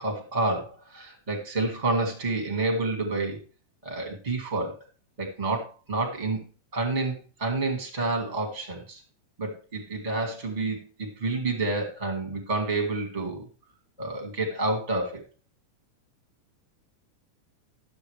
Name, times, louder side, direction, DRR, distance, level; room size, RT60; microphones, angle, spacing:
voice 1, 0.0-3.4 3.8-4.8 5.2-6.4 6.7-9.0 9.4-13.4 14.0-15.2, right 2 dB, 15° right, 2 dB, 1.7 m, -29 dB
12.5 x 7.9 x 3.4 m, 0.34 s
omnidirectional pair, 3.6 m